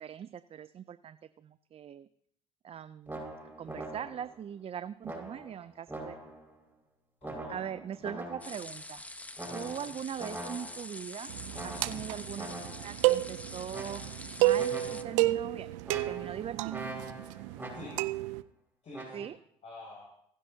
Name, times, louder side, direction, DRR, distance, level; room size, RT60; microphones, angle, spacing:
voice 1, 0.0-2.1 2.6-3.2 3.6-6.2 7.5-9.0 9.5-11.3 11.6-12.5 12.8-14.0 14.4-15.8 16.0-16.8 19.1-19.4, right 9 dB, 40° right, 13 dB, 0.5 m, -41 dB
sound 1, 3.1-4.4 5.0-6.5 7.2-8.7 9.4-11.0 11.5-13.0 13.7-14.3 14.5-15.3 15.8-18.2 18.9-19.3, right 1 dB, 10° right, 5.6 m, -43 dB
voice 2, 7.2-7.7 9.4-10.0 11.7-12.1 17.7-18.0 18.8-19.3 19.6-20.1, left 2 dB, 45° left, -6 dB, 7.2 m, -48 dB
sound 2, 8.4-15.0, left 1 dB, 10° left, 1.0 m, -45 dB
sound 3, 11.3-18.4, right 16 dB, 85° right, 0.5 m, -31 dB
27.0 x 10.0 x 2.8 m, 0.68 s
supercardioid pair, 75°, 16 cm